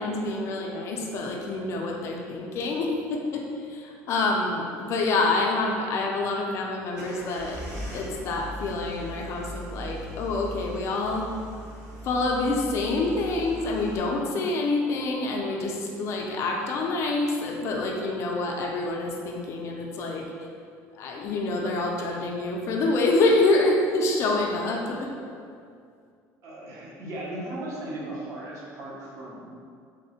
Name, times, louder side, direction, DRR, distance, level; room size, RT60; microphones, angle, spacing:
voice 1, 0.0-7.6 7.9-11.3 12.0-20.3 20.9-25.1, left 2 dB, 50° left, 0 dB, 0.4 m, -27 dB
sound 1, 6.9-14.0, right 1 dB, 70° right, 1.1 m, -39 dB
voice 2, 26.4-29.5, right 1 dB, 50° right, -5 dB, 0.7 m, -37 dB
3.5 x 2.1 x 2.7 m, 2.3 s
cardioid pair, 140°, 6 cm